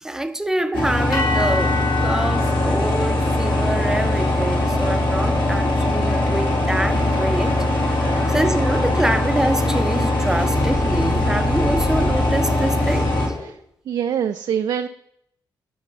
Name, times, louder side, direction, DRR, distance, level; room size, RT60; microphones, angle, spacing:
voice 1, 0.0-7.6 8.3-13.1, right 1 dB, 5° right, 0.7 m, -25 dB
sound 1, 0.7-13.3, left 1 dB, 80° left, 2.8 m, -21 dB
sound 2, 1.1-9.4, left 4 dB, 50° left, 1.7 m, -32 dB
sound 3, 2.4-13.5, left 2 dB, 30° left, 1.5 m, -32 dB
voice 2, 13.9-14.9, right 8 dB, 60° right, 0.4 m, -24 dB
11.0 x 5.6 x 5.5 m
cardioid pair, 110°, 8 cm